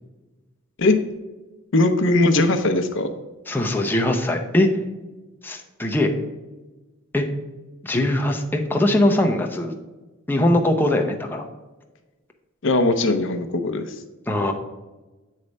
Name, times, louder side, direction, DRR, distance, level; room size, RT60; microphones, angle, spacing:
voice 1, 1.7-3.1 7.9-8.1 12.6-13.8, left 2 dB, 65° left, 7 dB, 0.7 m, -19 dB
voice 2, 3.5-4.7 5.4-6.1 7.1-7.3 7.8-9.8 10.3-11.5 14.3-14.5, left 1 dB, 10° left, 2 dB, 0.6 m, -21 dB
8.4 x 3.3 x 5.2 m, 1.2 s
head